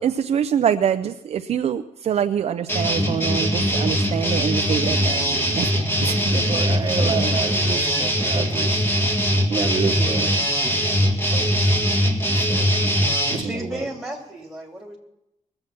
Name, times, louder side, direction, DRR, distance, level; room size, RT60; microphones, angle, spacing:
voice 1, 0.0-5.2 5.5-6.3 7.0-7.3, right 8 dB, 50° right, 8 dB, 0.5 m, -25 dB
sound 1, 2.7-13.4, equal, 15° left, 2.0 m, -21 dB
voice 2, 4.8-5.8 6.3-8.8 9.5-10.3 11.3-11.7 12.3-12.7 13.3-13.8, right 5 dB, 35° right, 0 dB, 1.2 m, -29 dB
voice 3, 13.4-15.0, equal, ahead, -1 dB, 2.9 m, -33 dB
21.0 x 7.7 x 5.9 m, 0.87 s
wide cardioid pair, 155°, 13 cm